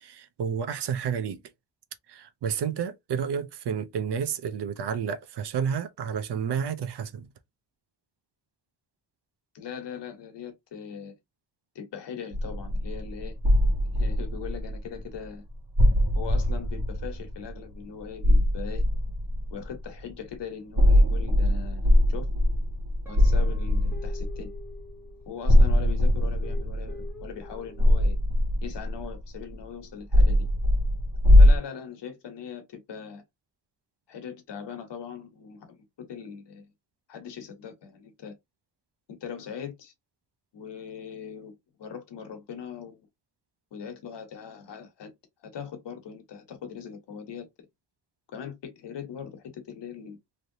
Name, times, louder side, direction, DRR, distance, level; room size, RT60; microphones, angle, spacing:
voice 1, 0.0-1.4 2.1-7.3, right 7 dB, 70° right, 0.6 m, -30 dB
voice 2, 9.5-11.2 11.7-13.4 14.0-15.4 16.1-18.8 19.5-22.3 23.1-24.5 25.3-28.2 28.6-30.5 31.4-33.2 34.1-36.7 37.1-38.3 39.1-39.9 40.5-43.0 43.7-45.1 45.4-47.5 48.3-50.2, left 7 dB, 75° left, 1.1 m, -40 dB
sound 1, 12.3-15.2 15.8-17.8 18.2-19.8 20.8-24.7 25.5-29.5 30.1-31.6, left 1 dB, 50° right, 1.3 m, -22 dB
Guitar, 23.0-25.5 26.2-28.2, left 3 dB, 5° right, 1.1 m, -47 dB
3.2 x 2.7 x 2.6 m
wide cardioid pair, 130°, 43 cm